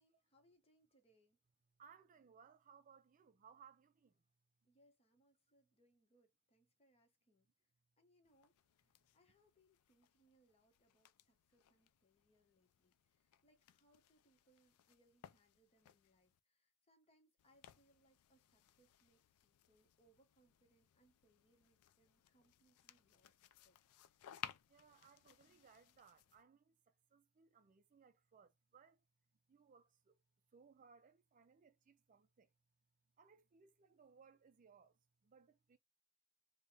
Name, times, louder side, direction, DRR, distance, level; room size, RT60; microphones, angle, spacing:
voice 1, 0.0-1.4 4.6-7.5 8.0-23.4 23.6-23.8, right 1 dB, 25° left, 0.9 m, -76 dB
voice 2, 1.8-4.2 24.7-29.0 29.5-30.2 30.5-32.5 33.2-35.8, right 6 dB, 35° right, 0.4 m, -66 dB
sound 1, 8.2-16.4 17.4-26.4, left 10 dB, 80° left, 0.3 m, -60 dB
3.5 x 2.1 x 3.9 m
head